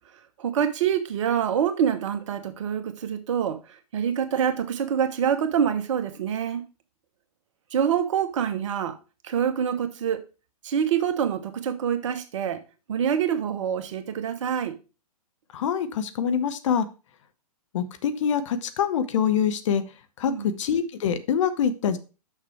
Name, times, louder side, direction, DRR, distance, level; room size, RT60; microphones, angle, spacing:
voice 1, 0.4-3.6 3.9-6.6 7.7-9.0 9.2-10.2 10.6-12.6 12.9-14.8 20.3-20.5, right 8 dB, 50° right, 1.1 m, -26 dB
voice 2, 15.5-16.9 17.7-19.8 20.2-22.0, left 7 dB, 55° left, 0.9 m, -25 dB
6.4 x 5.9 x 4.5 m
figure-of-eight pair, 115°, 19 cm